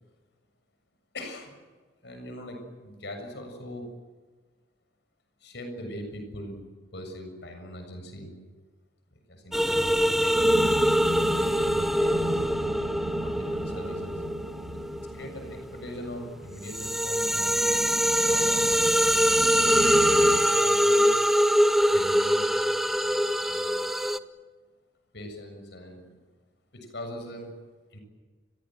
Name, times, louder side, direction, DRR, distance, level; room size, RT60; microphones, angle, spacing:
voice 1, 1.1-1.6 2.0-3.9 5.4-6.6 6.9-8.3 9.1-10.8 11.3-12.8 13.2-14.2 15.1-17.8 18.3-19.2 20.2-21.2 21.9-23.9 25.1-26.2 26.7-27.6 27.9-28.0, equal, 65° left, 5 dB, 7.0 m, -41 dB
sound 1, 9.5-15.9 16.3-24.2, equal, ahead, 0.7 m, -23 dB
sound 2, 10.3-20.4, right 1 dB, 60° right, 2.3 m, -36 dB
30.0 x 22.5 x 7.7 m, 1.4 s
head